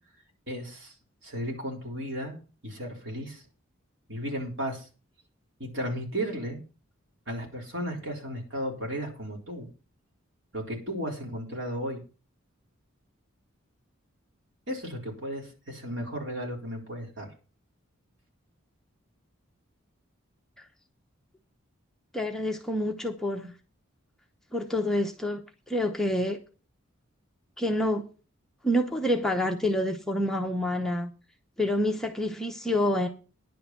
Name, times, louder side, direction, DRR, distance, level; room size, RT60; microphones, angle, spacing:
voice 1, 0.5-0.9 1.2-2.4 2.6-3.4 4.1-4.9 5.6-6.6 7.3-9.7 10.5-12.0 14.7-17.3, equal, 60° right, 4.0 m, -34 dB
voice 2, 22.1-23.5 24.5-25.4 25.7-26.4 27.6-28.1 28.6-31.1 31.6-33.1, left 1 dB, ahead, 0.8 m, -27 dB
10.5 x 8.6 x 5.9 m
head